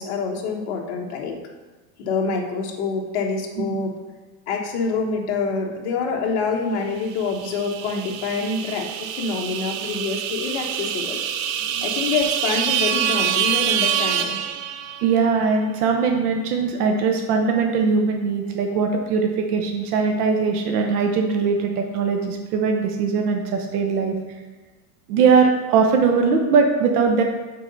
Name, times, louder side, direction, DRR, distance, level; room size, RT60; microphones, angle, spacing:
voice 1, 0.0-1.4 2.0-3.9 4.5-11.2 11.8-14.4, left 4 dB, 50° left, 1 dB, 1.1 m, -26 dB
sound 1, 7.2-15.2, right 9 dB, 65° right, 0.6 m, -26 dB
voice 2, 15.0-24.2 25.1-27.2, right 5 dB, 85° right, 3 dB, 1.0 m, -20 dB
7.2 x 3.9 x 5.3 m, 1.2 s
supercardioid pair, 180°, 44 cm